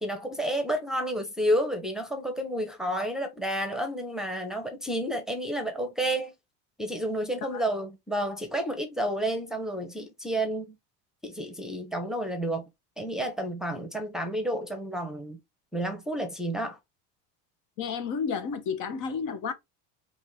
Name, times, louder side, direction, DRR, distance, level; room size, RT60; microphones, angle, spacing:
voice 1, 0.0-6.3 6.8-10.8 11.2-12.6 13.0-15.4 15.7-16.8, right 1 dB, ahead, 0.9 m, -30 dB
voice 2, 17.8-19.5, left 6 dB, 55° left, 1.0 m, -31 dB
4.9 x 2.6 x 3.5 m
supercardioid pair, 120°, 36 cm